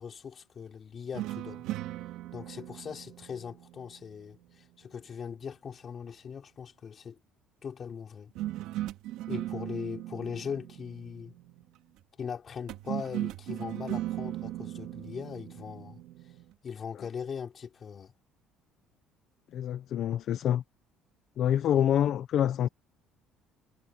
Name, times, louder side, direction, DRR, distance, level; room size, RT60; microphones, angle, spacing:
voice 1, 0.0-1.6 2.3-7.2 7.6-8.3 9.3-11.3 12.2-16.0 16.6-18.1, left 7 dB, 30° left, 4.2 m, -40 dB
sound 1, 1.1-4.5 8.4-11.8 12.7-16.5, right 15 dB, 75° right, 2.7 m, -38 dB
voice 2, 19.5-20.6 21.4-22.7, left 10 dB, 50° left, 0.6 m, -26 dB
cardioid pair, 160°, 0 cm